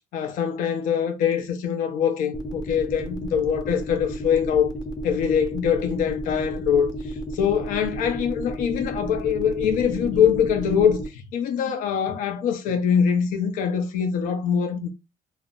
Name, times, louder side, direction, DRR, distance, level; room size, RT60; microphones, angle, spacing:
voice 1, 0.1-4.7 5.0-6.9 7.3-14.9, left 8 dB, 80° left, 0.6 m, -23 dB
sound 1, 2.3-11.1, right 1 dB, 30° left, 0.7 m, -32 dB
2.4 x 2.1 x 3.5 m
cardioid pair, 100°, 14 cm